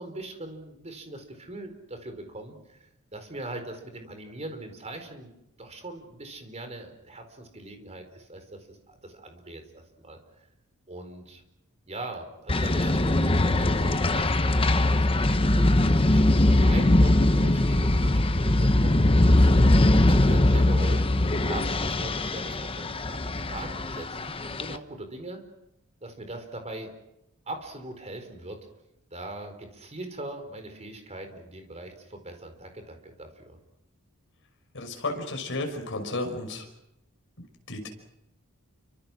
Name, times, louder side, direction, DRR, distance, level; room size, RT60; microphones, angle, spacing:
voice 1, 0.0-5.3 5.6-10.2 10.9-11.4 11.9-19.7 20.0-25.4 26.0-26.9 27.5-28.6 29.1-33.6, right 2 dB, 30° right, 6 dB, 4.4 m, -41 dB
sound 1, 12.5-24.8, left 1 dB, 25° left, 0.9 m, -21 dB
voice 2, 34.7-36.7 37.7-37.9, left 2 dB, 55° left, 4 dB, 5.8 m, -32 dB
29.5 x 25.0 x 6.3 m, 0.88 s
head